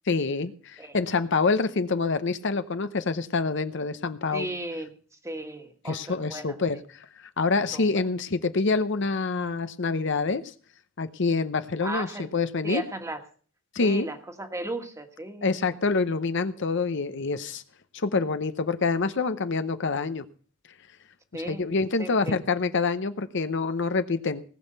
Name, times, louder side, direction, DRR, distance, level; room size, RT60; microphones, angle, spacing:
voice 1, 0.1-4.5 5.9-10.5 11.0-12.8 13.7-14.1 15.4-17.6 17.9-20.2 21.5-24.4, left 4 dB, 60° left, 11 dB, 0.8 m, -26 dB
voice 2, 4.3-4.9 5.2-6.5 7.7-8.0 11.8-12.3 12.6-13.2 13.8-15.5 21.3-21.6 22.0-22.4, right 1 dB, 15° right, 5 dB, 1.6 m, -35 dB
19.0 x 6.4 x 6.7 m, 0.43 s
head